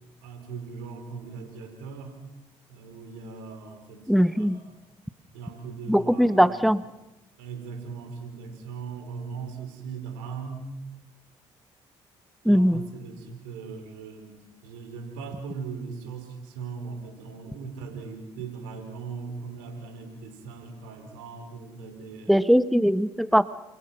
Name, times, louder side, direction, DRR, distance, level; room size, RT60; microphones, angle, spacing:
voice 1, 0.2-2.2 2.7-4.6 5.3-6.5 7.4-10.7 12.4-14.4 14.6-22.4, right 5 dB, 85° right, 5 dB, 5.3 m, -39 dB
voice 2, 4.1-4.6 5.9-6.8 12.4-12.9 22.3-23.5, equal, ahead, 13 dB, 1.2 m, -20 dB
29.5 x 28.5 x 6.1 m, 0.92 s
hypercardioid pair, 55°, 14 cm